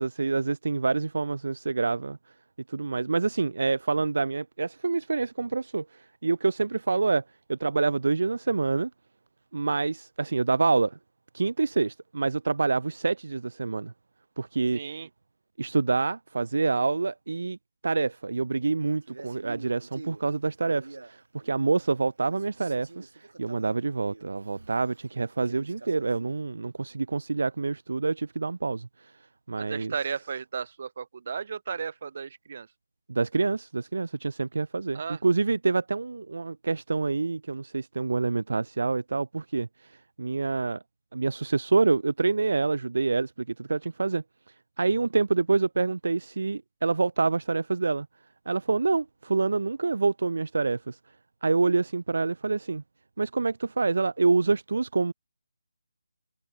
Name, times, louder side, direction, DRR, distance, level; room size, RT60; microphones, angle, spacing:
voice 1, 0.0-2.2 2.7-7.2 7.5-8.9 9.5-11.0 11.3-13.9 14.4-14.8 15.6-17.6 17.8-29.1 29.5-29.9 33.1-40.8 41.1-43.3 43.6-44.2 44.8-48.1 48.5-51.0 51.4-52.8 53.2-55.1, right 3 dB, 65° right, 0.4 m, -27 dB
voice 2, 14.7-15.1 29.6-32.7 34.9-35.2, right 6 dB, 40° right, 1.9 m, -34 dB
Male speech man speaking, 19.0-22.0 22.3-26.4, right 3 dB, 85° right, 2.9 m, -47 dB
figure-of-eight pair, 170°, 0 cm